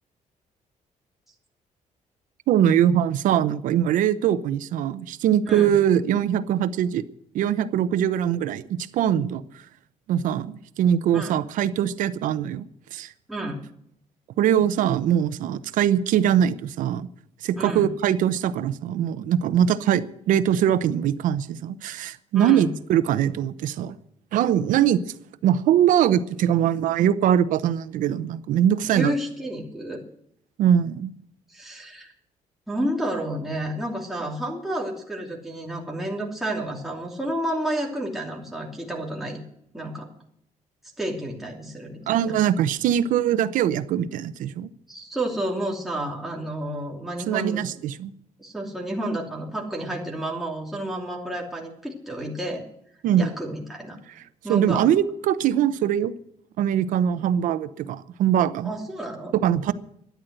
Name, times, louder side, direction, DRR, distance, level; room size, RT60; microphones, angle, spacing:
voice 1, 2.5-7.0 7.3-9.6 10.1-13.1 14.4-17.1 17.4-24.0 24.3-25.0 25.4-29.1 30.6-31.1 42.1-44.7 47.3-48.1 53.0-53.3 54.5-56.1 56.6-58.7 59.3-59.7, right 10 dB, 90° right, 0.8 m, -22 dB
voice 2, 13.3-13.6 17.6-17.9 22.3-22.7 28.8-30.0 31.5-32.1 32.7-39.4 39.7-40.1 41.0-42.3 44.9-47.6 48.4-52.7 53.2-54.0 54.4-54.9 58.6-59.3, right 1 dB, ahead, 2.8 m, -30 dB
13.0 x 10.5 x 8.0 m
cardioid pair, 155°, 13 cm